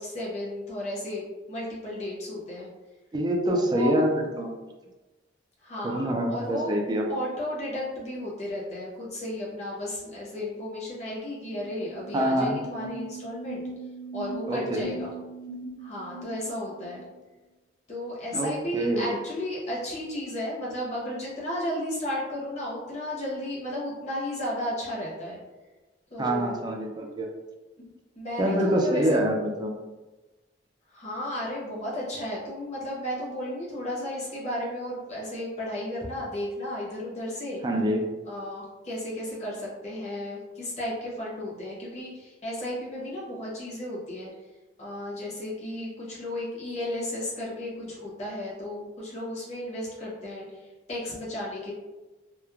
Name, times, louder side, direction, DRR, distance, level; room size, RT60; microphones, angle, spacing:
voice 1, 0.0-2.7 3.5-3.9 5.6-6.7 7.1-13.6 14.1-15.1 15.8-17.0 17.9-25.4 26.1-26.5 27.8-27.9 28.1-29.2 30.9-37.6 38.3-44.3 44.8-51.7, left 1 dB, 40° left, -5 dB, 0.8 m, -34 dB
voice 2, 3.1-4.1 4.4-4.6 5.8-7.1 12.1-12.6 14.5-14.9 18.3-19.1 26.2-27.3 28.4-29.8 37.6-38.0, right 1 dB, 25° right, 1 dB, 0.3 m, -25 dB
sound 1, 11.0-11.1 11.3-17.0, right 2 dB, 80° right, 0.7 m, -40 dB
2.9 x 2.1 x 2.3 m, 1.1 s
head